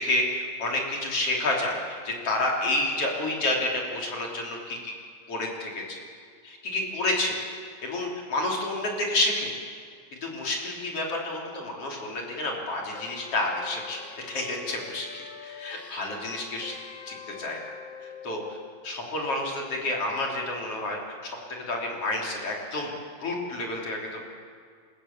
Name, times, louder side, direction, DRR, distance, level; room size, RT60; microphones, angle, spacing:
voice 1, 0.0-4.9 5.3-6.0 6.4-7.4 7.8-9.5 10.2-14.0 14.3-16.7 17.1-17.6 18.2-18.4 18.8-21.4 21.7-22.9 23.2-24.2, left 2 dB, 40° left, -1 dB, 3.8 m, -29 dB
sound 1, 12.9-18.7, left 6 dB, 60° left, 3.2 m, -44 dB
28.5 x 15.5 x 7.2 m, 2.1 s
omnidirectional pair, 4.2 m